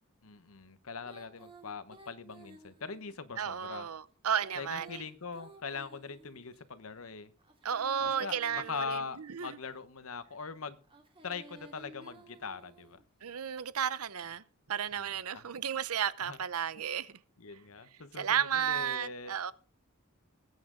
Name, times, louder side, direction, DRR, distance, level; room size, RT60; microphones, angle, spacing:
voice 1, 0.2-3.9 4.6-7.3 8.0-10.8 11.2-13.0 14.9-15.1 15.3-15.4 16.2-16.4 17.4-19.3, left 5 dB, 70° left, 1.0 m, -42 dB
Female singing, 1.0-3.2 4.3-6.6 7.4-9.6 10.8-13.1, right 2 dB, 25° right, 2.4 m, -55 dB
voice 2, 3.4-5.0 7.6-9.6 13.2-14.4 14.7-17.2 18.1-19.5, right 8 dB, 85° right, 0.7 m, -33 dB
19.5 x 8.8 x 3.8 m
head